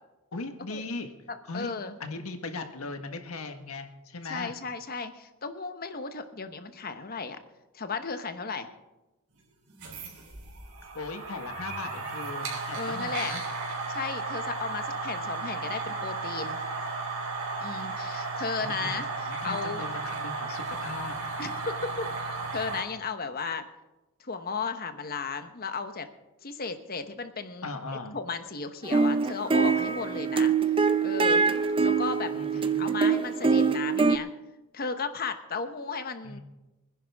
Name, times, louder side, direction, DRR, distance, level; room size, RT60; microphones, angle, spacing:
voice 1, 0.3-1.1 1.5-1.7 2.0-4.6 10.9-13.4 18.6-21.1 27.6-28.2 32.3-32.9 36.2-36.4, left 3 dB, 80° left, 6 dB, 1.5 m, -38 dB
voice 2, 1.5-2.0 4.3-7.4 7.7-8.7 12.8-13.3 13.9-16.6 17.6-19.8 21.4-22.1 22.5-23.7 24.2-26.1 26.4-27.7 28.1-30.5 31.0-31.4 31.8-34.3 34.7-36.4, left 4 dB, 45° left, 9 dB, 1.1 m, -35 dB
sound 1, 9.7-22.8, right 3 dB, 75° right, 3.7 m, -34 dB
sound 2, 28.8-34.2, right 5 dB, 25° right, 0.5 m, -24 dB
25.0 x 10.5 x 3.6 m, 1.0 s
head